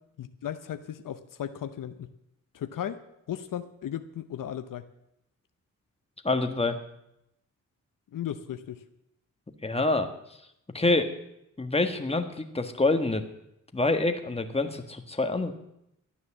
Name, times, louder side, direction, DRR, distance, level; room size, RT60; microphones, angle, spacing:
voice 1, 0.2-2.1 2.5-3.0 3.3-4.8 8.1-8.8, left 10 dB, 80° left, 10 dB, 0.8 m, -36 dB
voice 2, 6.2-6.8 9.6-10.1 10.7-11.1 11.6-13.2 13.7-15.5, left 2 dB, 20° left, 6 dB, 1.5 m, -26 dB
12.5 x 9.6 x 7.3 m, 0.82 s
cardioid pair, 65°, 32 cm